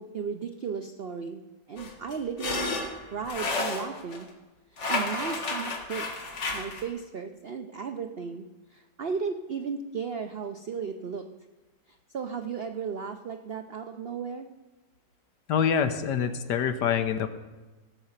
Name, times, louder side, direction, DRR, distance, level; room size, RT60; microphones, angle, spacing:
voice 1, 0.0-1.4 1.7-2.8 3.1-4.3 4.9-8.5 8.7-11.3 11.9-14.5, right 6 dB, 85° right, 6 dB, 0.5 m, -35 dB
sound 1, 1.8-4.2 4.8-6.9, left 3 dB, 40° left, 1.7 m, -31 dB
voice 2, 15.5-17.3, left 7 dB, 70° left, 9 dB, 1.5 m, -25 dB
16.5 x 6.6 x 7.3 m, 1.2 s
omnidirectional pair, 1.9 m